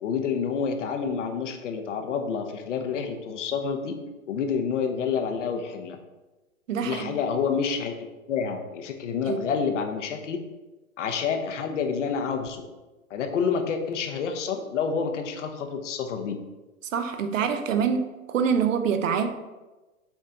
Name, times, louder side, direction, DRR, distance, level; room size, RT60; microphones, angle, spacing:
voice 1, 0.0-4.0 4.3-6.0 6.8-10.4 11.0-12.7 13.1-16.4, left 6 dB, 55° left, 5 dB, 1.0 m, -28 dB
voice 2, 6.7-7.2 9.3-9.5 16.9-19.3, right 7 dB, 65° right, 8 dB, 0.8 m, -25 dB
7.3 x 4.4 x 3.8 m, 1.1 s
hypercardioid pair, 135°, 43 cm